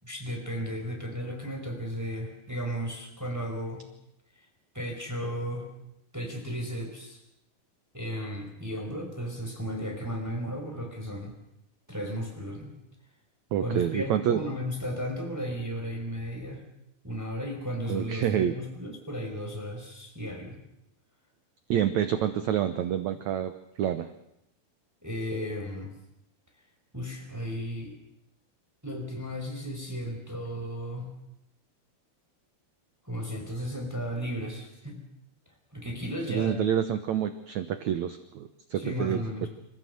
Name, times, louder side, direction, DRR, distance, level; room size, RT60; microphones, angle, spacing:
voice 1, 0.0-3.8 4.7-5.7 6.1-7.2 7.9-11.3 11.9-12.7 13.6-16.6 17.0-20.6 25.0-25.9 26.9-27.9 28.8-31.1 33.0-35.0 35.7-36.7 38.7-39.5, equal, 5° right, 1 dB, 4.3 m, -34 dB
voice 2, 13.5-14.5 17.9-18.5 21.7-23.5 23.8-24.1 36.3-39.2, right 10 dB, 70° right, 9 dB, 1.8 m, -27 dB
27.0 x 15.5 x 7.9 m, 0.82 s
omnidirectional pair, 4.4 m